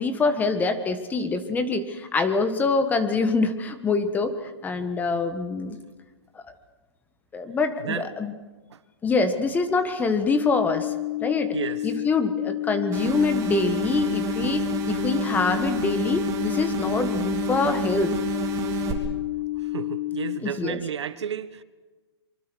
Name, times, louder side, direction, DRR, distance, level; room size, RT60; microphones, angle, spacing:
voice 1, 0.0-5.8 7.3-8.3 9.0-10.9 11.2-11.5 11.8-18.1 20.4-20.8, left 3 dB, 10° left, 1.5 m, -25 dB
sound 1, 10.4-20.4, left 17 dB, 40° left, 0.6 m, -30 dB
voice 2, 11.5-11.8 19.7-21.6, right 8 dB, 80° right, 1.5 m, -32 dB
sound 2, 12.9-18.9, right 8 dB, 25° right, 3.6 m, -30 dB
25.5 x 24.0 x 6.4 m
hypercardioid pair, 145°, 14 cm